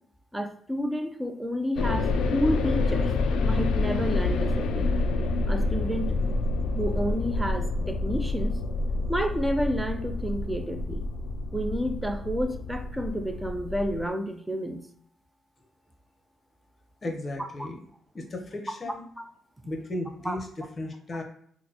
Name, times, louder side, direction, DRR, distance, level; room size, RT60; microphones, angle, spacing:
voice 1, 0.3-3.1 3.4-4.9 5.5-6.1 6.7-8.6 9.1-11.0 11.5-14.8 19.2-19.3 20.2-20.4, equal, 5° right, 7 dB, 0.5 m, -30 dB
sound 1, 1.8-14.1, left 3 dB, 80° left, 0.3 m, -28 dB
voice 2, 17.0-17.8 18.1-19.0 19.7-21.2, left 1 dB, 35° left, 3 dB, 0.8 m, -35 dB
4.0 x 2.0 x 2.9 m, 0.63 s
cardioid pair, 90°, 0 cm